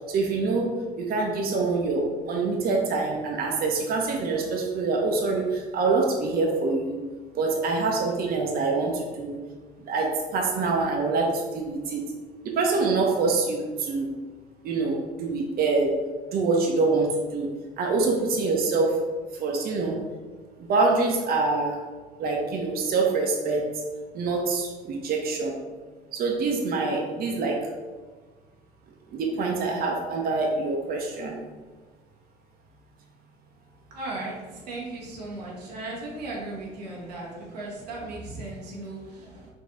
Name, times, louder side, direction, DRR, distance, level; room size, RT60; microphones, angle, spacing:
voice 1, 0.1-0.7 1.0-7.0 7.4-9.4 9.9-12.0 12.5-14.1 14.6-15.9 16.3-17.5 17.8-19.0 19.4-20.0 20.6-21.8 22.2-23.7 24.1-25.6 26.1-27.6 29.1-31.4, right 3 dB, 50° right, 0 dB, 0.7 m, -25 dB
voice 2, 33.9-39.5, right 2 dB, 90° right, -4 dB, 1.0 m, -36 dB
4.1 x 2.6 x 3.5 m, 1.4 s
hypercardioid pair, 65°, 20 cm